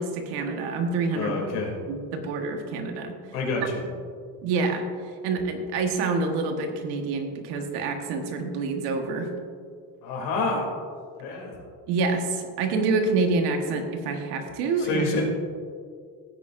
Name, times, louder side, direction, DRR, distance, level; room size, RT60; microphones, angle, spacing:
voice 1, 0.0-1.3 1.9-3.1 4.4-4.8 5.2-9.3 11.9-15.0, right 3 dB, 85° right, 4 dB, 1.5 m, -27 dB
voice 2, 1.1-1.7 3.3-3.8 10.0-10.7 11.2-11.6 14.8-15.2, left 2 dB, 75° left, -1 dB, 3.0 m, -28 dB
16.0 x 9.0 x 2.6 m, 2.1 s
cardioid pair, 125°, 39 cm